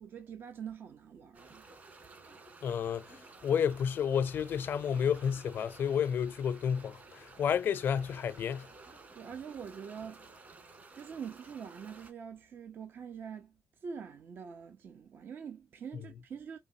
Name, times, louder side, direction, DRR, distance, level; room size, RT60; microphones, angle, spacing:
voice 1, 0.0-1.7 9.1-16.6, right 7 dB, 60° right, 0.7 m, -45 dB
sound 1, 1.3-12.1, right 3 dB, 40° right, 2.0 m, -54 dB
voice 2, 2.6-8.7, left 8 dB, 65° left, 0.5 m, -31 dB
4.8 x 2.9 x 2.6 m
cardioid pair, 85°, 4 cm